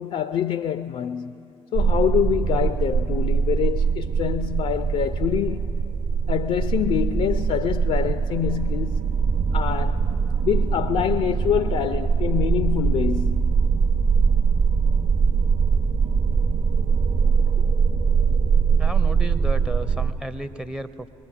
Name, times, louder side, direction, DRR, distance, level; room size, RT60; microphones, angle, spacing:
voice 1, 0.0-1.4 1.7-5.7 6.3-9.1 9.5-10.0 10.4-13.7, left 9 dB, 45° left, 0.4 m, -25 dB
sound 1, 1.7-20.1, right 5 dB, 40° right, 0.8 m, -22 dB
voice 2, 18.8-21.1, right 1 dB, 5° right, 0.5 m, -33 dB
22.5 x 20.5 x 2.4 m
figure-of-eight pair, 40°, 14 cm